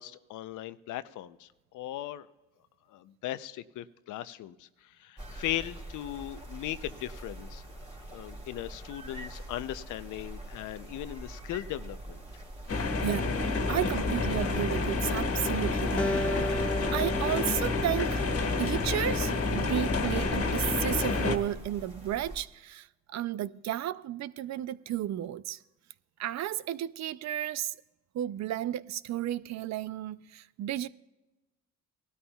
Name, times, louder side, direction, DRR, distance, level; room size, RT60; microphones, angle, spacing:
voice 1, 0.0-1.5 1.7-2.3 2.9-7.6 8.1-12.2, left 13 dB, 85° left, 0.6 m, -38 dB
sound 1, 5.2-22.4, right 1 dB, 20° right, 2.9 m, -44 dB
sound 2, 12.7-21.4, left 3 dB, 50° left, 1.6 m, -29 dB
voice 2, 12.7-13.4 13.7-16.7 16.9-25.6 26.2-27.8 28.1-30.9, right 12 dB, 65° right, 0.5 m, -33 dB
Acoustic guitar, 16.0-19.3, left 1 dB, 5° left, 0.6 m, -35 dB
19.0 x 13.0 x 2.3 m
cardioid pair, 90°, 30 cm